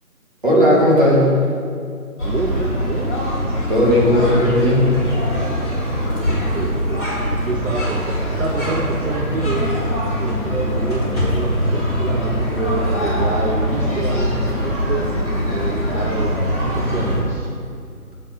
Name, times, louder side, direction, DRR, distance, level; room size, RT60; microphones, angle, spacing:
voice 1, 0.4-1.4 3.7-5.0, left 1 dB, 35° right, -5 dB, 1.5 m, -15 dB
sound 1, 2.2-17.2, equal, 10° left, 1.3 m, -22 dB
voice 2, 2.2-3.1 6.2-15.2 15.5-17.5, right 3 dB, 60° right, 2 dB, 0.6 m, -28 dB
sound 2, 7.9-9.8 10.3-10.6 10.9-11.7 12.8-12.9, left 1 dB, 20° right, 1.7 m, -32 dB
7.3 x 3.9 x 5.3 m, 2.3 s
figure-of-eight pair, 170°, 44 cm